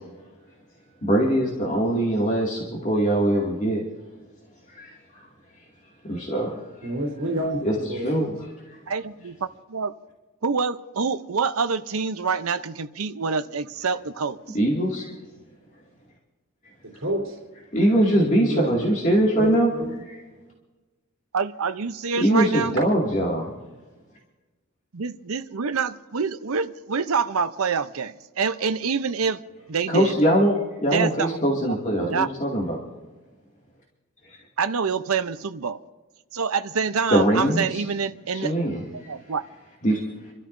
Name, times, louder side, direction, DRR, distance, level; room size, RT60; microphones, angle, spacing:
voice 1, 1.0-3.8 4.7-4.9 6.1-6.6 7.6-7.7 8.0-8.3 14.5-15.1 17.7-19.7 22.2-23.5 29.9-32.8 37.1-37.8 38.3-38.8 39.8-40.0, right 1 dB, 35° left, 2.3 m, -22 dB
voice 2, 6.8-8.3 16.8-17.4 17.9-19.0 19.4-20.0, equal, 60° right, 3.6 m, -29 dB
voice 3, 8.9-10.0 10.4-14.6 21.3-22.8 24.9-29.4 29.7-30.2 30.9-31.6 32.0-32.3 34.6-35.8 36.3-38.5 38.9-39.4, right 5 dB, 75° right, 0.7 m, -26 dB
28.5 x 13.0 x 2.6 m
head